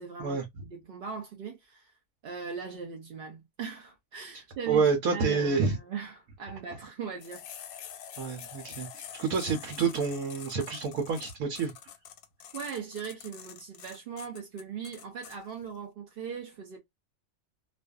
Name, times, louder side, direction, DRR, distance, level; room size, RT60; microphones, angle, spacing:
voice 1, 0.0-2.0 2.2-4.8 5.1-7.4 7.7-7.9 12.5-16.8, right 6 dB, 65° right, 0.5 m, -39 dB
voice 2, 4.7-5.8 8.2-11.7, right 5 dB, 90° right, 1.1 m, -28 dB
sound 1, 7.2-15.4, left 9 dB, 90° left, 1.0 m, -46 dB
2.5 x 2.3 x 2.2 m
omnidirectional pair, 1.4 m